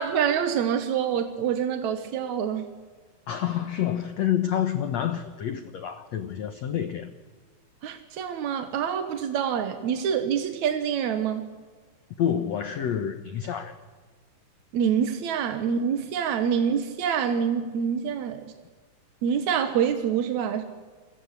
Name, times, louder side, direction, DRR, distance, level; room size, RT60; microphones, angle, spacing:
voice 1, 0.0-2.7 7.8-11.5 14.7-18.4 19.2-20.7, right 8 dB, 65° right, 8 dB, 2.0 m, -26 dB
voice 2, 3.3-7.1 12.2-13.8, left 10 dB, 80° left, 9 dB, 1.5 m, -28 dB
29.5 x 22.5 x 8.4 m, 1.4 s
omnidirectional pair, 4.8 m